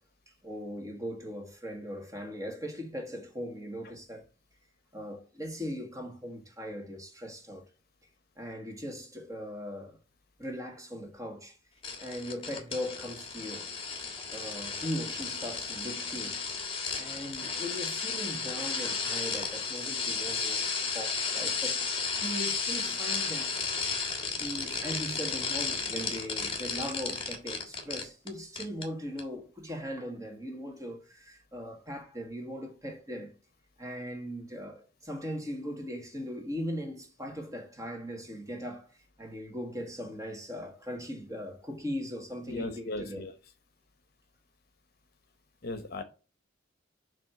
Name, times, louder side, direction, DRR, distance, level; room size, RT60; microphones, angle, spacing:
voice 1, 0.3-4.2 4.9-7.6 8.4-10.0 10.4-11.6 12.0-13.7 14.3-16.4 17.0-21.8 22.2-23.5 24.4-33.3 33.8-38.9 39.2-43.3, equal, 15° right, 1.6 m, -39 dB
sound 1, 11.8-28.3 28.6-28.9 29.2-29.3, left 5 dB, 30° left, 1.5 m, -33 dB
voice 2, 42.5-43.3 45.6-46.0, left 2 dB, 50° left, 0.9 m, -37 dB
7.3 x 3.2 x 5.9 m
head